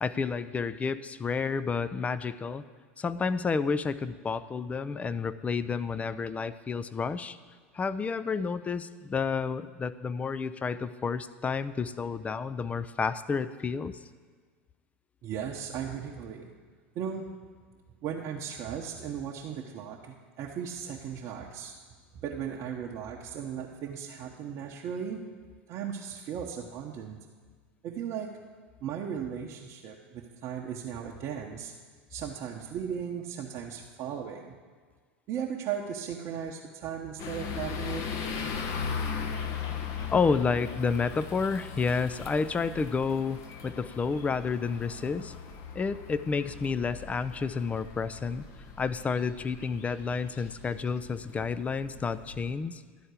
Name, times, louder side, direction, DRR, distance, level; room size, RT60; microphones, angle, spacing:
voice 1, 0.0-2.6 3.0-7.4 7.7-13.9 40.1-45.3 45.7-48.4 48.8-52.8, left 5 dB, 20° left, 14 dB, 0.4 m, -30 dB
voice 2, 15.2-16.5 16.9-17.3 18.0-21.7 22.2-25.2 25.7-27.2 27.8-28.3 28.8-31.7 32.1-34.5 35.3-38.0, right 8 dB, 50° right, -2 dB, 0.8 m, -36 dB
sound 1, 37.2-52.5, left 6 dB, 50° left, 1.0 m, -39 dB
11.5 x 4.4 x 8.2 m, 1.5 s
hypercardioid pair, 85°, 7 cm